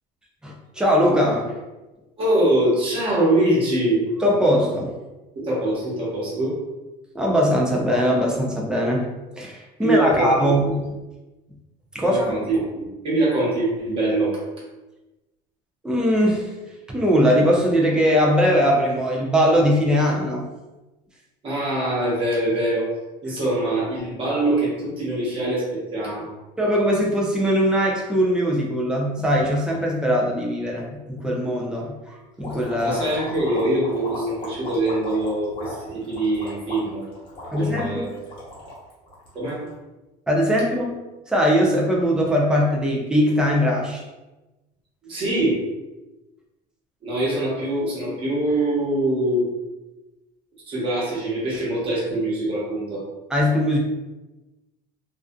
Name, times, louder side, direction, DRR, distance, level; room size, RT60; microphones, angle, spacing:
voice 1, 0.4-1.6 4.2-4.9 7.1-9.1 9.4-10.8 11.9-12.4 15.8-16.5 16.9-20.5 26.6-33.0 37.5-38.1 40.3-41.0 41.3-44.0 53.3-53.8, equal, 5° right, -2 dB, 0.3 m, -20 dB
voice 2, 2.2-4.0 5.4-6.6 9.8-10.3 10.6-10.7 12.0-14.4 21.4-22.9 23.2-26.3 32.8-37.1 37.5-38.1 39.3-39.7 45.0-45.6 47.0-49.5 50.7-53.0, right 1 dB, 30° right, -7 dB, 1.0 m, -23 dB
sound 1, 32.4-39.7, left 1 dB, 30° left, 0.9 m, -37 dB
2.4 x 2.4 x 2.2 m, 1.1 s
cardioid pair, 160°, 18 cm